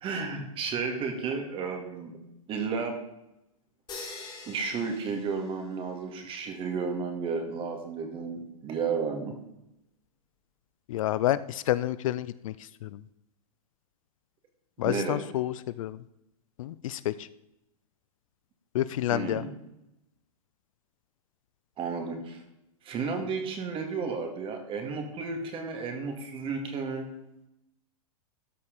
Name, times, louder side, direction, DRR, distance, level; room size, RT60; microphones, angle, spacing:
voice 1, 0.0-2.1 2.5-3.0 4.5-9.3 14.8-15.2 19.1-19.5 21.8-22.4 22.8-27.1, right 5 dB, 30° right, 4 dB, 2.0 m, -32 dB
sound 1, 3.9-6.0, left 3 dB, 25° left, 3.0 m, -44 dB
voice 2, 10.9-13.0 14.8-16.0 16.6-17.3 18.7-19.4, left 13 dB, 60° left, 16 dB, 0.4 m, -29 dB
13.0 x 5.4 x 5.2 m, 0.87 s
hypercardioid pair, 125°, 19 cm